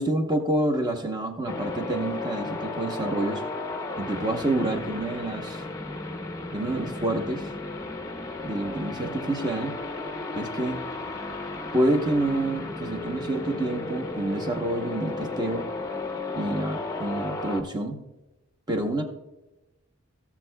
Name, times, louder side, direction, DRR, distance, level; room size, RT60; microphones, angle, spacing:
voice 1, 0.0-3.4 4.0-5.6 6.5-7.5 8.4-9.7 10.3-10.8 11.7-15.7 16.3-18.0 18.7-19.0, right 1 dB, 20° right, 5 dB, 0.8 m, -28 dB
sound 1, 1.5-17.6, left 2 dB, 15° left, 0.6 m, -34 dB
18.0 x 7.2 x 2.2 m, 1.0 s
head